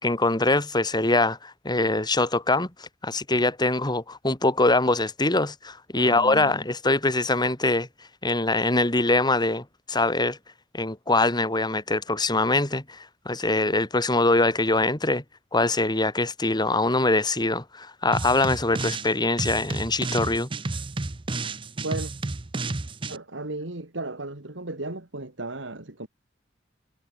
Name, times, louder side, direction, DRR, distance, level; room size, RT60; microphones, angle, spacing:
voice 1, 0.0-7.9 8.2-10.4 10.7-15.2 15.5-20.5, left 2 dB, 25° left, 3.0 m, -23 dB
voice 2, 5.9-6.5 21.8-22.1 23.1-26.1, right 2 dB, 80° right, 2.4 m, -35 dB
sound 1, 18.1-19.1 19.4-23.2, right 3 dB, 30° right, 0.7 m, -31 dB
head